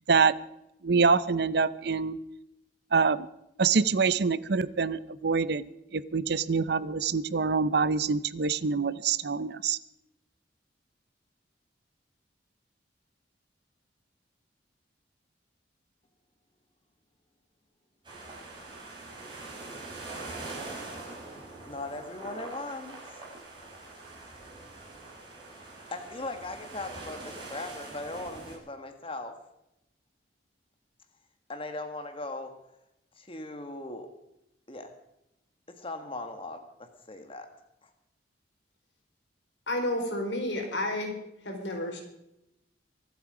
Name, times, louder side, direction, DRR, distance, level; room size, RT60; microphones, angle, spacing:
voice 1, 0.8-2.2 2.9-3.3 3.6-5.7 5.9-9.8, right 5 dB, 60° right, 17 dB, 0.7 m, -25 dB
sound 1, 18.0-28.6, right 2 dB, 25° right, 5.4 m, -43 dB
voice 2, 21.7-23.0 23.5-23.7 25.9-29.4 31.5-32.6 33.2-34.1 34.7-34.9 35.7-37.5 37.8-37.9, left 2 dB, 30° left, 6 dB, 1.6 m, -39 dB
voice 3, 39.7-41.2 41.4-42.0, left 1 dB, 85° left, 3 dB, 4.3 m, -31 dB
24.5 x 8.6 x 4.9 m, 0.84 s
head